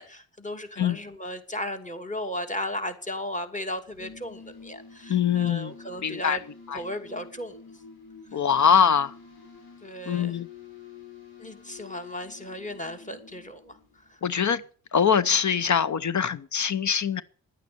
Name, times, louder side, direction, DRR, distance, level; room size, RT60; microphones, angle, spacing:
voice 1, 0.0-6.4 6.7-7.6 8.3-8.4 9.8-10.4 11.4-13.8 14.1-14.2, left 1 dB, 20° left, 2.6 m, -35 dB
sound 1, 3.8-14.2, left 5 dB, 85° left, 5.6 m, -48 dB
voice 2, 5.1-5.7 6.0-6.4 6.7-6.8 8.3-9.1 10.1-10.5 14.2-14.6 14.9-17.2, left 7 dB, 55° left, 0.8 m, -23 dB
11.0 x 9.1 x 8.5 m
cardioid pair, 70°, 36 cm